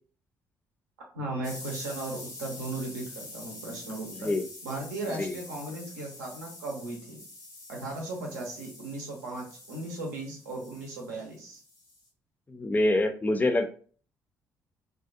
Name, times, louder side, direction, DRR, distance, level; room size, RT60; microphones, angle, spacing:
voice 1, 1.1-4.3 4.6-7.2 7.7-11.6, right 2 dB, 80° right, 0 dB, 0.6 m, -37 dB
sound 1, 1.4-12.1, left 2 dB, 80° left, 0.8 m, -46 dB
voice 2, 4.1-4.4 5.2-5.4 12.5-13.7, left 2 dB, 20° left, 7 dB, 0.4 m, -26 dB
2.5 x 2.2 x 2.5 m, 0.42 s
figure-of-eight pair, 45°, 9 cm